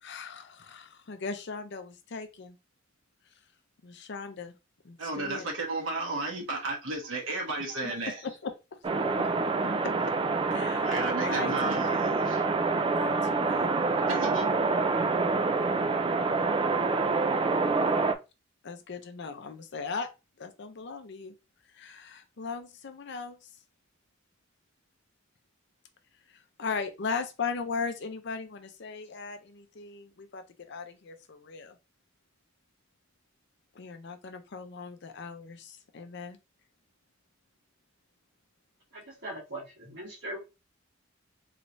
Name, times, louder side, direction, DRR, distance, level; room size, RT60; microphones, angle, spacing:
voice 1, 0.0-2.6 3.8-4.6 4.8-5.5 7.8-7.9 8.2-8.5 9.2-9.3 10.5-12.2 12.8-13.8 17.8-17.9 18.6-20.1 20.4-21.3 21.7-23.5 26.3-30.4 30.7-31.8 33.7-36.4, left 5 dB, 60° left, 0.6 m, -38 dB
voice 2, 5.0-8.2 10.8-11.9 12.2-12.5 14.1-14.5, right 2 dB, 90° right, 1.2 m, -33 dB
sound 1, 8.8-18.1, right 3 dB, 25° right, 0.3 m, -27 dB
voice 3, 38.9-40.4, right 1 dB, 60° right, 1.8 m, -40 dB
3.2 x 3.1 x 2.6 m
head